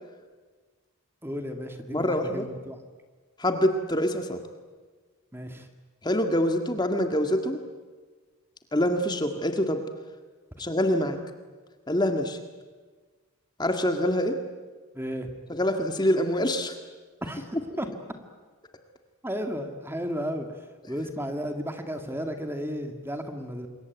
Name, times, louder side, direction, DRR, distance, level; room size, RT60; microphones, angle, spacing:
voice 1, 1.2-2.8 5.3-5.7 14.9-15.3 17.2-17.9 19.2-20.5 20.9-23.7, equal, 10° right, 6 dB, 2.0 m, -33 dB
voice 2, 1.9-2.5 3.4-4.4 6.0-7.6 8.7-9.8 10.6-11.2 11.9-12.4 13.6-14.4 15.5-16.8, left 1 dB, 20° left, 6 dB, 1.8 m, -25 dB
27.0 x 22.5 x 9.4 m, 1.4 s
head